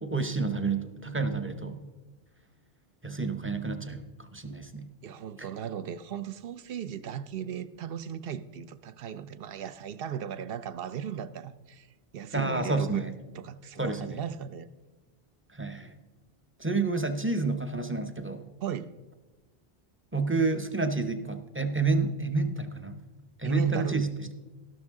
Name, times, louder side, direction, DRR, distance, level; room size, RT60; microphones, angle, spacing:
voice 1, 0.0-1.8 3.0-4.9 5.4-5.5 12.3-13.1 13.8-14.2 15.5-15.9 16.6-18.5 20.1-23.0 23.4-24.3, right 3 dB, 15° right, 0.5 m, -29 dB
voice 2, 5.0-13.1 13.3-14.7 18.6-18.9 23.4-24.0, right 8 dB, 65° right, 0.7 m, -37 dB
12.5 x 12.5 x 3.6 m
omnidirectional pair, 1.1 m